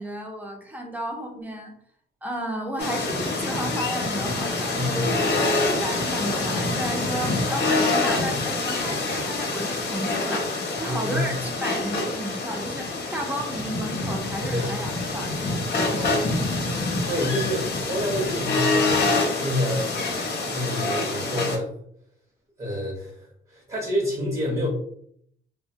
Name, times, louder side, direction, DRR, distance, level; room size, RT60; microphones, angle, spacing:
voice 1, 0.0-1.7 2.2-5.4 5.7-15.6 16.4-16.6, right 1 dB, 10° right, 1 dB, 0.7 m, -33 dB
sound 1, 2.8-21.6, left 3 dB, 60° left, 0.8 m, -26 dB
voice 2, 4.7-5.2 10.8-11.3 14.5-14.7 15.7-16.2 17.1-20.0 20.5-21.8 22.6-24.7, left 1 dB, 30° right, -3 dB, 1.0 m, -28 dB
2.7 x 2.2 x 2.7 m, 0.65 s
cardioid pair, 90°, 20 cm